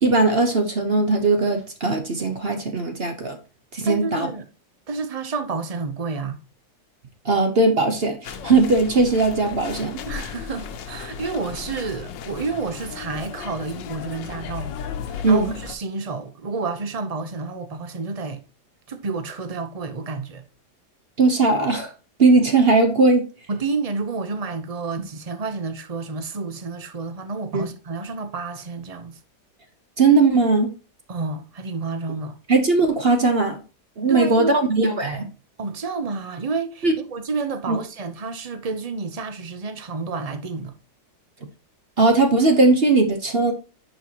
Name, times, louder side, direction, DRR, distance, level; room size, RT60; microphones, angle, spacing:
voice 1, 0.0-3.4 3.7-4.3 7.2-10.0 15.2-15.5 21.2-21.9 22.2-23.3 27.5-27.6 30.0-30.7 32.5-33.6 34.0-35.3 36.8-36.9 37.7-37.8 42.0-43.5, right 3 dB, 40° right, 1.0 m, -19 dB
voice 2, 3.8-4.5 4.9-6.4 10.1-18.4 18.9-20.4 23.5-29.2 31.1-32.4 34.1-34.7 35.6-40.7, right 4 dB, 65° right, 0.3 m, -30 dB
sound 1, 8.2-15.8, left 7 dB, 90° left, 1.5 m, -35 dB
10.5 x 5.7 x 2.9 m
omnidirectional pair, 1.9 m